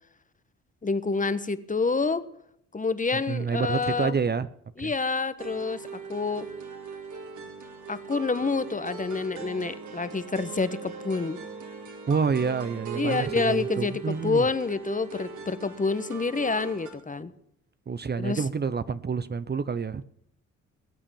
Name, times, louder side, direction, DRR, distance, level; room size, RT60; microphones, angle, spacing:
voice 1, 0.8-2.2 2.7-4.1 4.8-6.5 7.9-11.4 12.9-17.3 18.2-18.4, left 4 dB, 25° left, 13 dB, 1.3 m, -28 dB
voice 2, 3.1-4.5 4.8-4.9 12.1-14.5 17.9-20.0, right 5 dB, 30° right, 15 dB, 0.8 m, -28 dB
sound 1, 5.4-16.9, right 5 dB, 65° right, 4.1 m, -39 dB
21.0 x 8.7 x 7.1 m, 0.71 s
supercardioid pair, 70°, 31 cm